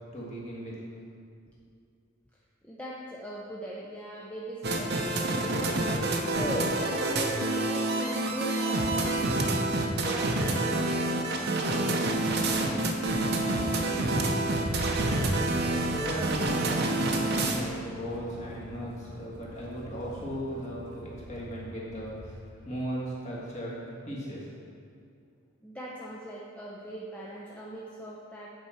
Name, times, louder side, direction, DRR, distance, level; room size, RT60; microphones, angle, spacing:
voice 1, 0.1-0.8 15.6-22.4 22.6-24.5, equal, 30° left, -5 dB, 1.6 m, -37 dB
voice 2, 2.6-5.0 5.6-9.5 10.0-12.7 25.6-28.5, equal, 5° left, -5 dB, 0.5 m, -40 dB
sound 1, 4.6-17.6, right 2 dB, 45° right, 0.7 m, -28 dB
Motor vehicle (road), 7.4-7.7 8.1-22.5 22.9-23.3, right 1 dB, 85° right, 0.9 m, -43 dB
8.5 x 4.2 x 5.7 m, 2.4 s
head